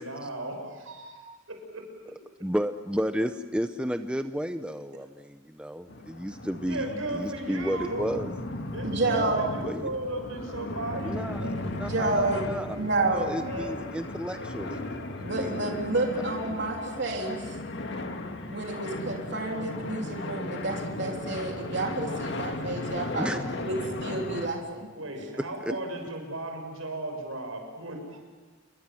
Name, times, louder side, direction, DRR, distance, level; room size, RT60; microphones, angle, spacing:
voice 1, 0.0-1.8 6.7-8.1 8.7-11.6 13.4-13.8 25.0-28.2, right 1 dB, 85° right, 3 dB, 6.8 m, -36 dB
voice 2, 2.4-6.8 7.1-8.3 9.7-9.8 11.0-11.4 11.8-12.7 13.1-15.6 16.5-16.6 23.2-23.4 25.6-25.7, equal, 5° right, 8 dB, 0.8 m, -32 dB
sound 1, 5.9-24.5, left 2 dB, 60° left, 2.1 m, -36 dB
voice 3, 8.8-9.5 11.7-12.4 12.7-13.3 15.2-17.5 18.5-24.9, right 2 dB, 55° right, 0 dB, 3.7 m, -30 dB
29.0 x 23.0 x 7.8 m, 1.4 s
head